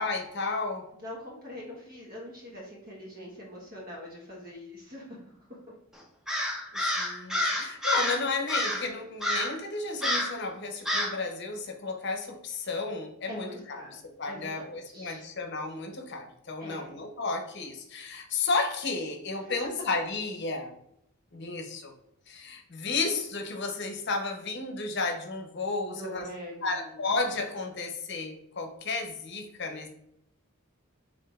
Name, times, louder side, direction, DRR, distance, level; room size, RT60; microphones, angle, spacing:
voice 1, 0.0-0.9 6.7-20.7 21.3-21.9 22.3-26.3 26.6-29.9, left 3 dB, 55° left, 4 dB, 0.8 m, -33 dB
voice 2, 0.9-5.6 13.3-13.9 14.2-14.5 14.9-15.2 16.6-16.9 19.4-19.5 25.8-27.0, equal, 45° right, -4 dB, 1.2 m, -43 dB
Crow, 6.3-8.2 8.5-8.9 9.2-9.6 10.0-10.4 10.9-11.2, left 1 dB, ahead, 0.6 m, -28 dB
4.8 x 3.7 x 2.4 m, 0.76 s
head